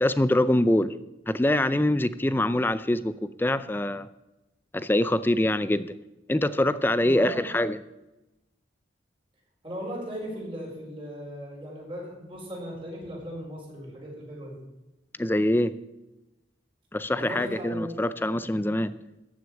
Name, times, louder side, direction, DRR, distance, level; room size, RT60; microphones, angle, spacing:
voice 1, 0.0-1.0 1.3-4.1 4.7-5.9 6.3-7.8 15.2-15.7 16.9-18.9, left 1 dB, 10° left, 14 dB, 0.4 m, -24 dB
voice 2, 7.0-7.5 9.6-14.6 17.1-17.9, equal, 30° right, -2 dB, 4.8 m, -37 dB
14.0 x 6.4 x 8.7 m, 0.98 s
head